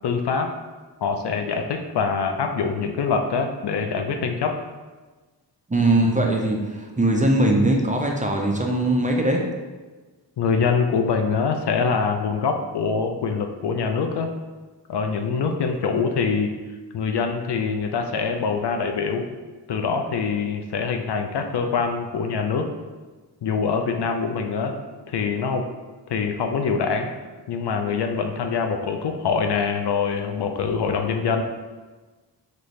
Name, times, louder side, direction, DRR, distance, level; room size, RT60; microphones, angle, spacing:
voice 1, 0.0-0.5 1.0-4.6 10.4-14.3 14.9-16.5 16.9-19.3 19.7-22.7 23.4-24.7 25.1-25.7 26.1-27.1 27.5-31.4, left 5 dB, 65° left, 5 dB, 0.5 m, -24 dB
voice 2, 5.7-9.4, right 1 dB, 20° right, 0 dB, 0.5 m, -20 dB
4.0 x 2.6 x 3.1 m, 1.3 s
cardioid pair, 60°, 44 cm